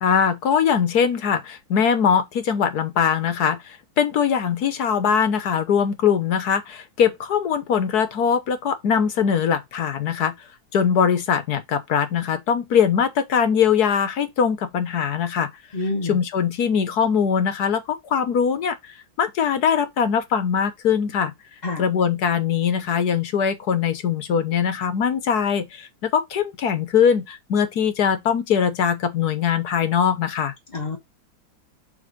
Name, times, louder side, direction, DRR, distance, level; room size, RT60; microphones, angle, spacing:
voice 1, 0.0-10.3 10.7-15.5 16.0-18.8 19.2-21.3 21.8-30.5, left 7 dB, 60° left, 1.4 m, -21 dB
voice 2, 15.7-16.2 21.6-21.8 30.7-31.0, left 2 dB, 30° left, 0.8 m, -27 dB
7.0 x 3.6 x 5.1 m
omnidirectional pair, 2.1 m